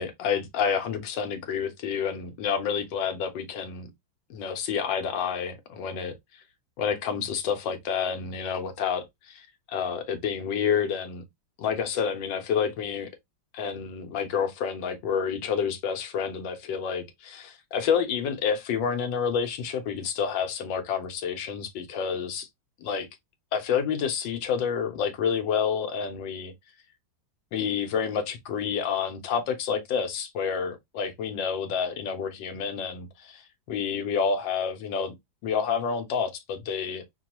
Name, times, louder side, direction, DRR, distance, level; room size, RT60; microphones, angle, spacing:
voice 1, 0.0-3.9 4.3-6.1 6.8-11.2 11.6-13.1 13.5-22.5 22.8-23.1 23.5-26.5 27.5-33.4 33.7-35.1 35.4-37.0, left 7 dB, 75° left, 1.5 m, -29 dB
5.4 x 2.3 x 2.9 m
omnidirectional pair, 2.1 m